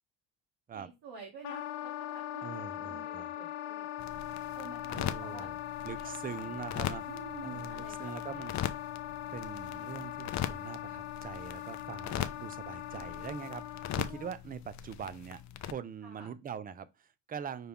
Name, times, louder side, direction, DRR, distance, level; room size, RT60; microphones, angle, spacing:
voice 1, 0.7-5.5 6.0-6.5 7.1-8.5 16.0-16.3, right 5 dB, 50° right, 1.8 m, -51 dB
Wind instrument woodwind instrument, 1.4-14.3, left 13 dB, 85° left, 0.6 m, -41 dB
voice 2, 2.4-3.4 4.9-5.6 5.8-7.1 7.4-8.8 9.3-17.7, right 7 dB, 20° right, 0.3 m, -43 dB
sound 1, 4.0-15.7, left 11 dB, 40° left, 0.5 m, -40 dB
5.7 x 2.3 x 3.4 m
supercardioid pair, 80°, 45 cm